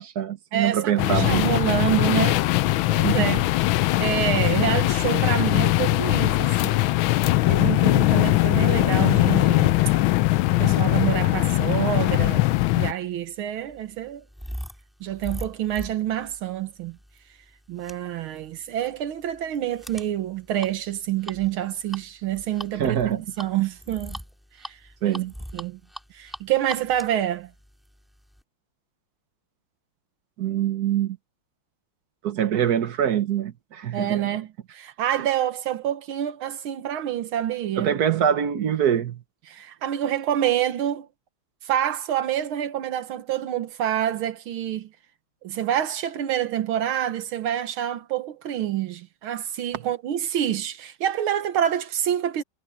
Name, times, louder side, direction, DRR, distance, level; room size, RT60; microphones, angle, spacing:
voice 1, 0.0-1.5 3.0-3.4 22.8-23.2 25.0-25.3 30.4-31.2 32.2-34.2 37.8-39.2, right 9 dB, 55° right, 1.3 m, -24 dB
voice 2, 0.5-3.4 3.7-6.8 7.5-9.8 10.5-12.5 12.7-14.2 15.0-17.0 17.7-24.2 24.6-25.2 25.5-25.8 26.1-27.5 33.9-38.0 39.5-41.1 41.6-44.9 45.4-52.4, right 11 dB, 85° right, 1.9 m, -27 dB
sound 1, 1.0-12.9, left 18 dB, 80° left, 1.3 m, -21 dB
sound 2, 13.0-28.4, equal, ahead, 4.3 m, -42 dB
omnidirectional pair, 2.2 m